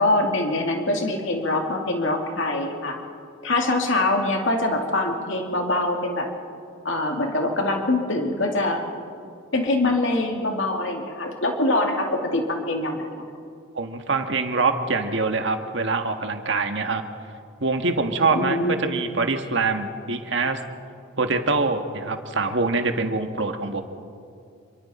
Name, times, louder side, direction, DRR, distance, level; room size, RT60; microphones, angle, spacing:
voice 1, 0.0-3.0 3.4-6.3 6.8-8.8 9.5-13.2 18.3-18.8, left 2 dB, 65° left, 2 dB, 2.4 m, -24 dB
voice 2, 13.7-17.0 17.6-20.6 21.2-23.8, right 3 dB, 60° right, 6 dB, 1.5 m, -24 dB
27.5 x 24.0 x 4.3 m, 2.4 s
head